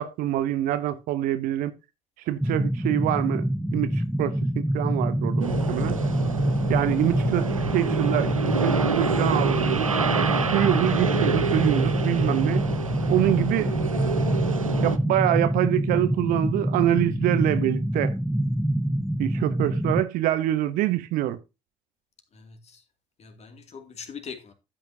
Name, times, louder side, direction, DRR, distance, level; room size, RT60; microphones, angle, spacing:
voice 1, 0.0-1.7 2.3-3.5 3.7-6.0 6.7-9.9 10.5-12.7 13.1-13.7 14.8-18.1 19.2-21.4, right 13 dB, 55° right, 0.9 m, -25 dB
sound 1, 2.4-20.0, right 1 dB, ahead, 0.6 m, -26 dB
sound 2, 5.4-15.0, right 5 dB, 85° right, 0.6 m, -28 dB
voice 2, 22.3-22.8 23.2-24.5, left 6 dB, 40° left, 2.5 m, -42 dB
12.5 x 8.9 x 2.8 m
figure-of-eight pair, 50°, 17 cm